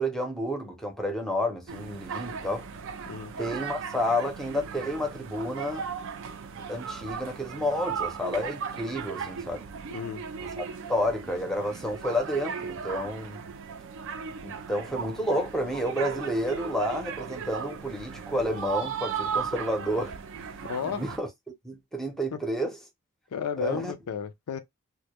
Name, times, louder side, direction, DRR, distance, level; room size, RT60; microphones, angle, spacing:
voice 1, 0.0-2.7 3.4-5.8 6.7-9.6 10.4-13.4 14.4-20.2 20.8-21.3 21.6-22.8 23.6-23.9, equal, ahead, 0.6 m, -30 dB
sound 1, 1.7-21.2, right 6 dB, 55° right, 0.4 m, -37 dB
voice 2, 20.6-21.0 22.3-22.4 23.3-24.6, left 7 dB, 80° left, 0.4 m, -32 dB
2.1 x 2.1 x 2.8 m
head